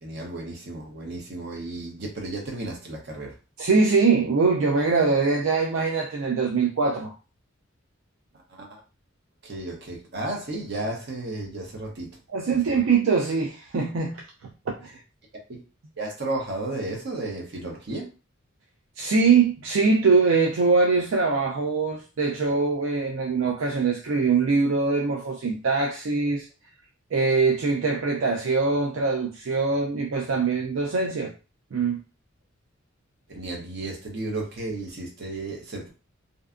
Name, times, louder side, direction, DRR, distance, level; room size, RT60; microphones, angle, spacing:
voice 1, 0.0-3.3 8.5-8.8 9.4-12.2 12.5-12.8 15.5-15.6 16.0-18.1 33.3-35.9, right 2 dB, 55° right, 0.8 m, -33 dB
voice 2, 3.6-7.1 12.3-14.2 14.8-15.0 19.0-26.5 27.1-31.3 31.7-32.0, right 4 dB, 75° right, 0.4 m, -22 dB
2.6 x 2.2 x 2.4 m
head